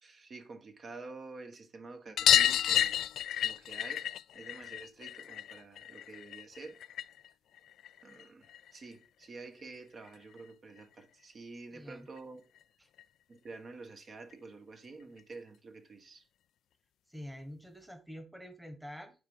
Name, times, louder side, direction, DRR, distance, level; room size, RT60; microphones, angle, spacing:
voice 1, 0.0-3.0 3.4-4.1 4.3-6.8 8.0-12.4 13.3-16.2, right 3 dB, 45° right, 1.4 m, -49 dB
sound 1, 2.2-7.3 7.6-8.7 10.1-10.2 10.4-10.5 10.8-10.9 12.2-12.3 12.6-12.7 13.0-13.1 14.3-14.4 15.2-15.3, left 11 dB, 75° left, 0.3 m, -30 dB
voice 2, 11.7-12.1 12.8-12.9 17.1-19.3, equal, 5° right, 1.3 m, -47 dB
9.2 x 3.6 x 5.4 m
cardioid pair, 90°, 0 cm